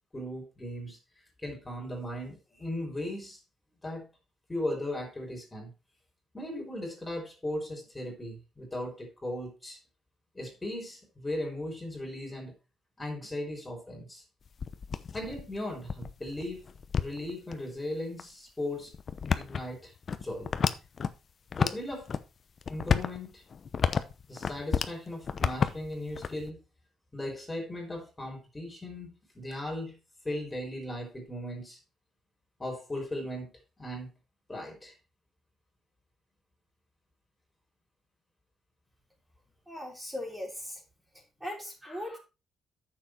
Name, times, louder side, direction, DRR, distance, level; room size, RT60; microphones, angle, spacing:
voice 1, 0.1-1.0 1.4-3.4 3.8-4.1 4.5-5.7 6.3-9.8 10.3-12.5 13.0-14.2 15.1-16.6 17.0-18.9 19.4-19.9 20.2-20.5 21.6-22.1 22.7-23.4 24.3-26.6 27.1-30.0 30.2-31.8 32.6-33.5 33.8-34.1 34.5-34.9, left 1 dB, 15° left, 3.9 m, -37 dB
sound 1, 14.5-17.5 18.2-18.3 18.9-21.1 21.5-22.2 22.6-25.0 25.2-26.5, left 6 dB, 45° left, 0.8 m, -31 dB
voice 2, 39.7-40.8 41.1-42.2, left 1 dB, 10° right, 3.8 m, -39 dB
9.2 x 7.0 x 4.5 m
cardioid pair, 120°, 0 cm